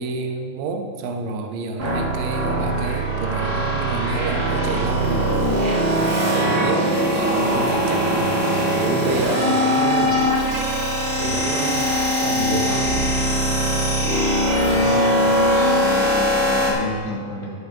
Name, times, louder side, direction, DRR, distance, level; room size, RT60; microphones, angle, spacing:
voice 1, 0.0-5.6 5.9-8.3 8.6-10.3 11.2-13.2, right 4 dB, 75° right, 3 dB, 2.3 m, -29 dB
sound 1, 1.8-16.7, equal, 55° right, 1.3 m, -21 dB
voice 2, 14.6-17.5, left 1 dB, 60° left, -5 dB, 3.5 m, -31 dB
19.5 x 7.5 x 2.9 m, 2.2 s
omnidirectional pair, 5.2 m